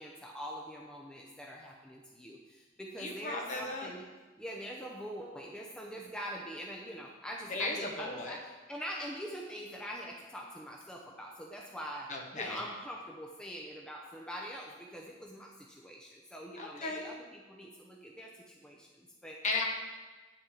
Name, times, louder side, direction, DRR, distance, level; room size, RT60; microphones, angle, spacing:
voice 1, 0.0-4.1 4.4-19.4, equal, 5° left, -1 dB, 0.6 m, -44 dB
voice 2, 3.0-3.9 7.5-8.4 12.1-12.6 16.6-17.1 19.4-19.6, left 3 dB, 40° left, 1 dB, 1.2 m, -35 dB
9.6 x 7.1 x 3.8 m, 1.2 s
head